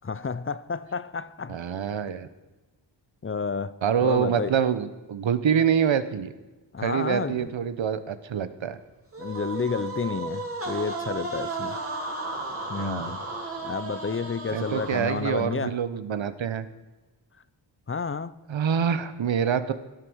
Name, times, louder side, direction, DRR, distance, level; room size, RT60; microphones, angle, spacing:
voice 1, 0.0-1.7 3.2-4.5 6.7-7.5 9.2-11.8 12.7-13.2 13.6-15.8 17.9-18.3, left 5 dB, 30° left, 0.6 m, -31 dB
voice 2, 1.5-2.3 3.8-6.3 6.8-8.8 12.8-13.1 14.5-16.7 18.5-19.7, right 8 dB, 90° right, 1.1 m, -26 dB
sound 1, 9.1-15.5, right 2 dB, 30° right, 3.6 m, -34 dB
17.0 x 11.5 x 6.3 m
wide cardioid pair, 95°, 45 cm